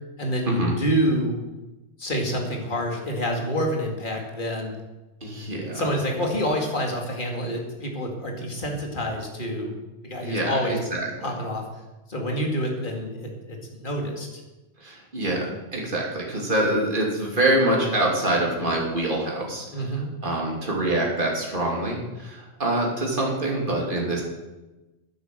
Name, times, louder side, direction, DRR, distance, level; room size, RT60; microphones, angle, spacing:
voice 1, 0.2-1.4 2.0-4.7 5.7-9.7 10.0-10.8 11.2-11.6 12.1-14.4 19.7-20.1, equal, 50° left, 1 dB, 2.6 m, -27 dB
voice 2, 5.2-5.8 10.2-11.0 14.8-19.6 20.2-24.2, right 1 dB, 50° right, -2 dB, 3.1 m, -25 dB
11.0 x 10.0 x 7.7 m, 1.1 s
omnidirectional pair, 1.1 m